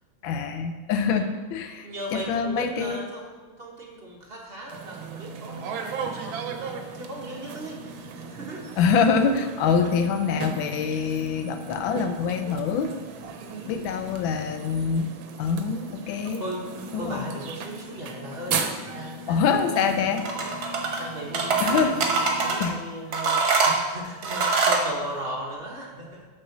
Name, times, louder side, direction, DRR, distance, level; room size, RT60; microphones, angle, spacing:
voice 1, 0.2-3.1 8.8-12.9 13.7-15.1 15.4-16.4 16.9-17.3 19.3-20.2 21.6-22.0 22.6-22.8, left 6 dB, 75° left, 8 dB, 1.5 m, -25 dB
voice 2, 1.8-9.3 9.8-9.9 11.0-11.3 13.4-14.0 16.2-26.3, right 1 dB, 35° right, -2 dB, 1.2 m, -38 dB
sound 1, 4.7-22.6, right 4 dB, 75° right, 1.5 m, -36 dB
sound 2, 20.2-21.0 21.3-22.7 23.1-24.9, right 4 dB, 55° right, 1.6 m, -23 dB
6.6 x 6.2 x 5.9 m, 1.3 s
omnidirectional pair, 2.2 m